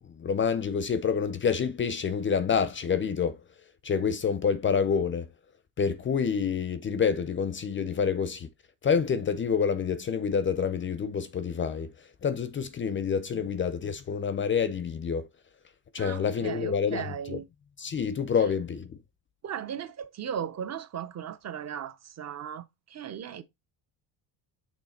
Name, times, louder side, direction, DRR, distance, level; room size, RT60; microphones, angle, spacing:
voice 1, 0.2-3.4 3.8-5.3 5.8-8.5 8.8-11.9 12.2-15.3 15.9-17.4 17.8-18.9, left 6 dB, 30° left, 0.5 m, -27 dB
voice 2, 16.0-17.5 19.4-23.4, right 8 dB, 40° right, 0.6 m, -37 dB
6.4 x 3.5 x 4.2 m
cardioid pair, 145°, 43 cm